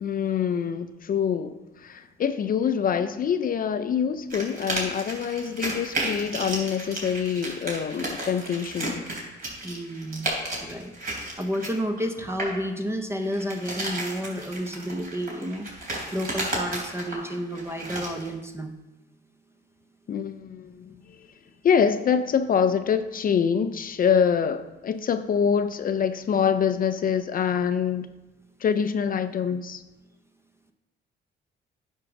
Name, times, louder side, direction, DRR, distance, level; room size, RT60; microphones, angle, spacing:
voice 1, 0.0-9.0 20.1-21.2 21.6-28.1 28.6-29.8, left 7 dB, 45° left, 0.5 m, -25 dB
sound 1, 4.3-12.6 13.2-18.3, right 2 dB, 50° right, 3.2 m, -33 dB
voice 2, 9.6-10.3 10.6-18.7, equal, 15° right, 0.6 m, -31 dB
9.9 x 3.7 x 6.0 m
cardioid pair, 90°, 20 cm